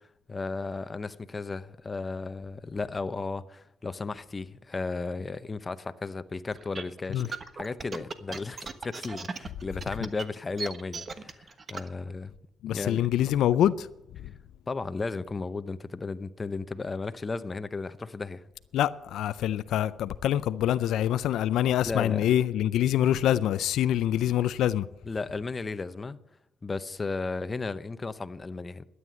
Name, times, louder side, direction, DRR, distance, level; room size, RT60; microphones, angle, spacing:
voice 1, 0.3-12.3 12.7-13.1 14.7-18.4 21.8-22.3 25.0-26.2 26.6-28.9, left 3 dB, 25° left, 0.8 m, -34 dB
sound 1, 6.5-11.9, right 4 dB, 40° right, 1.2 m, -37 dB
voice 2, 12.6-13.9 14.2-14.3 18.7-24.9, left 11 dB, 80° left, 0.5 m, -25 dB
12.5 x 9.5 x 7.5 m
cardioid pair, 90°, 0 cm